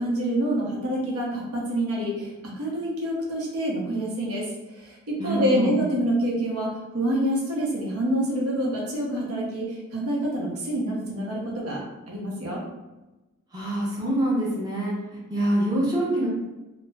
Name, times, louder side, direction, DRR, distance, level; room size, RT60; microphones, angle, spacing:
voice 1, 0.0-11.8 12.1-12.6, right 1 dB, 80° right, -3 dB, 0.7 m, -27 dB
voice 2, 5.2-5.8 13.5-16.3, right 1 dB, 20° right, -5 dB, 0.6 m, -25 dB
2.4 x 2.0 x 3.2 m, 1.1 s
head